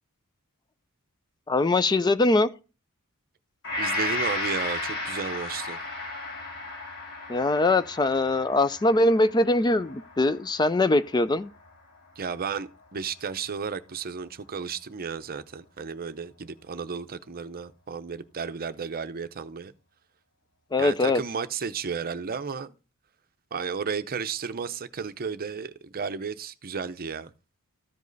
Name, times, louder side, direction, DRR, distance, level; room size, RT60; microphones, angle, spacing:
voice 1, 1.5-2.5 7.3-11.5 20.7-21.2, left 2 dB, 20° left, 0.4 m, -22 dB
Gong, 3.6-12.0 12.4-12.5, left 2 dB, 60° left, 4.8 m, -34 dB
voice 2, 3.8-5.8 12.2-19.7 20.8-22.7 23.5-27.3, right 6 dB, 40° right, 0.6 m, -33 dB
13.5 x 5.3 x 3.9 m
head